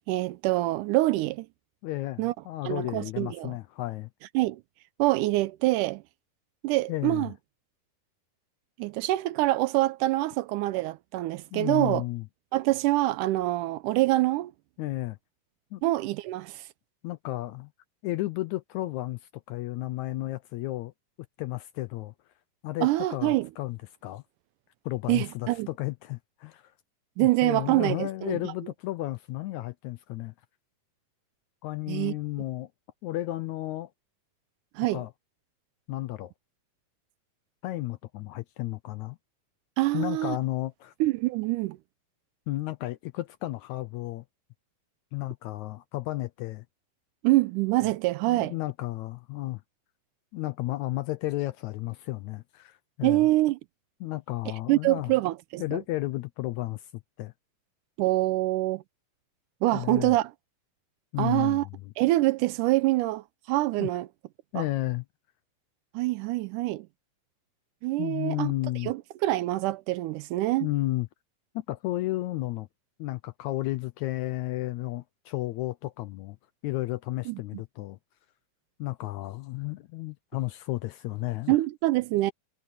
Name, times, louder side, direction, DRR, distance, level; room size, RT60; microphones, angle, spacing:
voice 1, 0.1-1.5 2.2-2.3 2.7-3.5 4.3-4.6 5.0-6.0 6.6-7.3 8.8-12.0 12.5-14.5 15.8-16.6 22.8-23.5 25.1-25.7 27.2-28.4 31.9-32.1 34.8-35.0 39.8-40.4 41.0-41.8 47.2-48.5 53.0-53.6 54.7-55.8 58.0-58.8 59.6-60.3 61.2-61.7 62.0-64.1 64.6-64.7 65.9-66.9 67.8-68.5 68.8-70.7 77.3-77.4 81.5-82.3, right 18 dB, 80° right, 2.0 m, -25 dB
voice 2, 1.8-4.1 6.9-7.3 11.5-12.3 14.8-15.2 15.7-15.8 17.0-17.7 18.0-20.9 21.4-22.1 22.6-24.2 24.9-26.7 27.2-30.3 31.6-32.7 33.0-33.9 34.9-35.1 35.9-36.3 37.6-39.2 39.9-40.9 42.5-44.2 45.1-46.6 48.3-49.6 50.3-53.3 54.0-55.1 55.6-56.9 57.2-57.3 59.7-60.2 61.1-61.7 63.8-63.9 64.5-65.0 68.0-68.9 70.6-71.1 71.6-72.7 73.0-76.4 76.6-78.0 78.8-81.6, left 17 dB, 80° left, 1.7 m, -33 dB
omnidirectional pair, 3.8 m